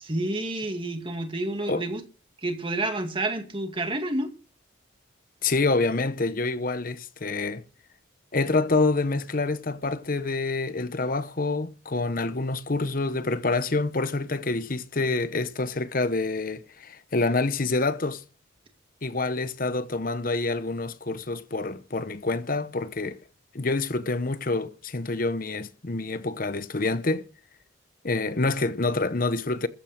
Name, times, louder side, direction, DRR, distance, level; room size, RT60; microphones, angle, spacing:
voice 1, 0.0-2.0 2.4-4.3, right 2 dB, 25° right, 2.1 m, -29 dB
voice 2, 5.4-7.6 8.3-18.2 19.0-23.2 23.5-27.3 28.0-29.7, left 3 dB, 45° left, 0.9 m, -27 dB
14.5 x 9.0 x 6.6 m
head